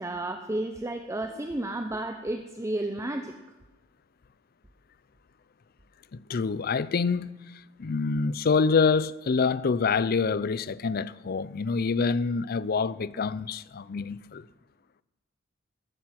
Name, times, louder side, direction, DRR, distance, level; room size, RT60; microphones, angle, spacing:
voice 1, 0.0-3.3, right 1 dB, 15° right, 0.7 m, -32 dB
voice 2, 6.1-14.5, left 5 dB, 45° left, 0.5 m, -26 dB
14.0 x 13.0 x 5.9 m
head